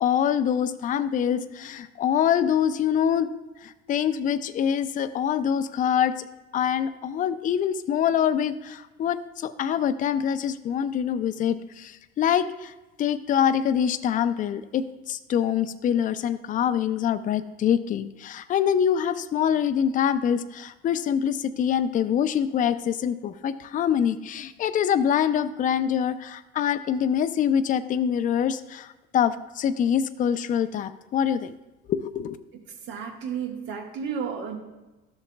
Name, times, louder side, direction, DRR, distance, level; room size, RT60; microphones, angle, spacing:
voice 1, 0.0-3.3 3.6-6.1 6.5-12.7 13.0-31.5 31.9-32.4, left 8 dB, 40° left, 12 dB, 0.5 m, -25 dB
voice 2, 32.9-34.6, right 7 dB, 65° right, 3 dB, 1.5 m, -32 dB
12.5 x 7.1 x 2.2 m, 1.1 s
supercardioid pair, 100°, 20 cm